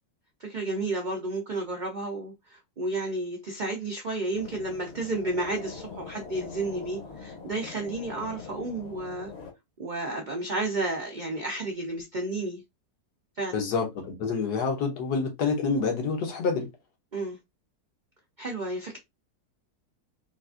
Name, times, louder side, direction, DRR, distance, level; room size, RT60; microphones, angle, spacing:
voice 1, 0.4-9.3 9.8-12.6 13.4-13.6 17.1-17.4 18.4-19.0, right 2 dB, 80° right, 0.4 m, -32 dB
sound 1, 4.3-9.5, left 5 dB, 50° left, 0.9 m, -43 dB
voice 2, 13.5-16.7, left 4 dB, 80° left, 1.5 m, -27 dB
4.0 x 2.4 x 2.3 m
omnidirectional pair, 1.7 m